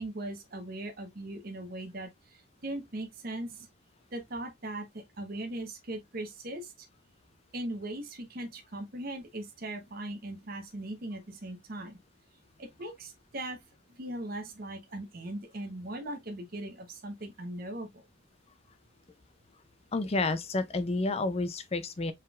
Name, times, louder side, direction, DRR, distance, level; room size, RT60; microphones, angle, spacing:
voice 1, 0.0-2.1 2.6-3.7 4.1-4.9 5.2-6.7 7.5-12.0 12.6-13.6 14.0-17.9, right 1 dB, 50° right, 0.9 m, -39 dB
voice 2, 19.9-22.1, left 3 dB, 35° left, 0.5 m, -30 dB
4.3 x 3.8 x 2.4 m
head